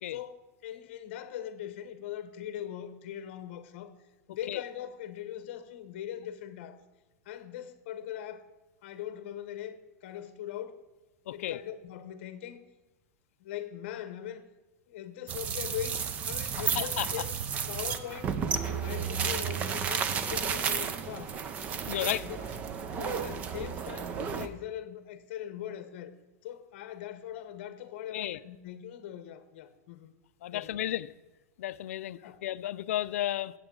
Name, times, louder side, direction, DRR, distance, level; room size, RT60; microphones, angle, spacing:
voice 1, 0.1-3.9 4.3-6.8 7.2-8.5 8.8-10.8 11.3-12.7 13.4-14.5 14.9-17.3 17.7-21.4 22.0-22.6 22.9-26.1 26.4-30.1 30.5-30.8 32.1-32.4, left 11 dB, 45° left, 0.9 m, -41 dB
voice 2, 11.3-11.6 16.8-17.1 21.9-22.2 28.1-28.4 30.4-31.1 31.6-33.5, left 13 dB, 65° left, 0.4 m, -33 dB
sound 1, 15.3-24.5, right 7 dB, 15° right, 0.4 m, -32 dB
14.0 x 8.2 x 3.8 m
supercardioid pair, 175°, 8 cm